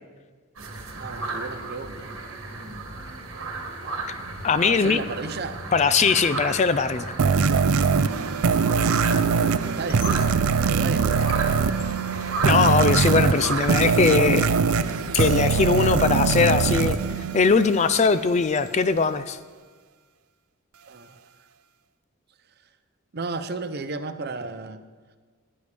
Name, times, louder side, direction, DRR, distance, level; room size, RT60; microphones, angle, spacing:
sound 1, 0.6-13.7, right 3 dB, 70° right, 1.5 m, -34 dB
voice 1, 0.9-2.2 4.6-5.6 9.7-11.7 20.9-21.2 23.1-24.8, right 3 dB, 50° right, 10 dB, 0.7 m, -34 dB
voice 2, 4.4-5.0 5.7-7.1 12.4-14.5 15.1-19.4, left 5 dB, 30° left, 13 dB, 0.4 m, -21 dB
sound 2, 7.2-18.0, right 5 dB, 90° right, 0.5 m, -22 dB
Squeak, 9.8-19.4, left 7 dB, 70° left, 0.9 m, -43 dB
17.0 x 9.7 x 3.4 m, 1.5 s
head